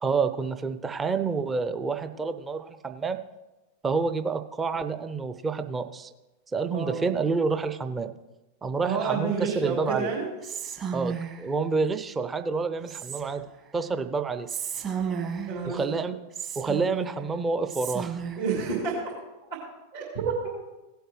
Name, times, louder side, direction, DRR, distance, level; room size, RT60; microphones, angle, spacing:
voice 1, 0.0-3.2 3.8-6.1 6.5-8.1 8.6-10.1 10.9-13.4 13.7-14.5 15.7-16.2 16.6-18.2, right 4 dB, 15° right, 9 dB, 0.6 m, -28 dB
voice 2, 6.7-7.0 8.8-10.3 15.5-15.8 18.4-19.0 19.9-20.5, right 5 dB, 60° right, -6 dB, 3.1 m, -29 dB
Whispering, 10.4-11.5 12.9-13.6 14.5-15.7 16.3-17.3 17.7-18.5, right 6 dB, 30° right, 1.6 m, -33 dB
17.5 x 7.9 x 3.2 m, 1.1 s
figure-of-eight pair, 90°, 0 cm